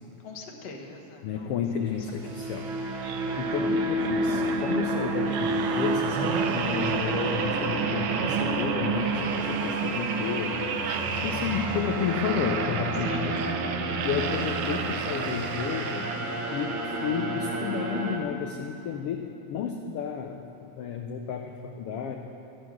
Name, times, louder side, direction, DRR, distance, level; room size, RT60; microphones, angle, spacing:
voice 1, 0.2-1.5 2.2-2.6 10.9-11.6 13.0-13.2, left 4 dB, 65° left, 2 dB, 2.2 m, -44 dB
voice 2, 1.2-2.7 3.1-10.7 11.1-13.3 14.0-16.1 16.5-22.2, left 7 dB, 85° left, 4 dB, 1.3 m, -32 dB
sound 1, 1.9-18.2, right 2 dB, 55° right, 1.7 m, -30 dB
sound 2, 3.0-16.6 17.1-17.3, right 6 dB, 80° right, 1.3 m, -32 dB
13.5 x 11.5 x 6.1 m, 2.8 s
omnidirectional pair, 3.5 m